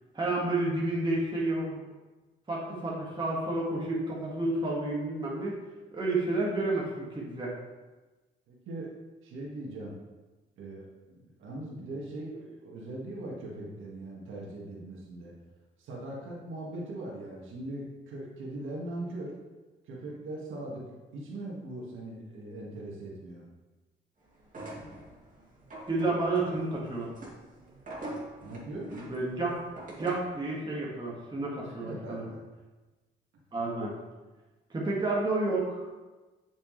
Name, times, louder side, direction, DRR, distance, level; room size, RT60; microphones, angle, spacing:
voice 1, 0.1-1.8 2.5-5.5 5.9-7.5 25.9-27.1 28.9-29.6 30.0-32.3 33.5-33.9 34.7-35.9, right 2 dB, 25° right, -5 dB, 1.8 m, -30 dB
voice 2, 8.5-8.9 9.2-10.0 10.6-15.3 15.8-19.4 19.9-23.4 28.4-28.9 31.7-32.4, right 1 dB, 80° right, -3 dB, 1.9 m, -40 dB
sound 1, 24.4-30.4, right 1 dB, 40° right, 2.6 m, -44 dB
7.7 x 6.4 x 3.2 m, 1.2 s
cardioid pair, 90°, 20 cm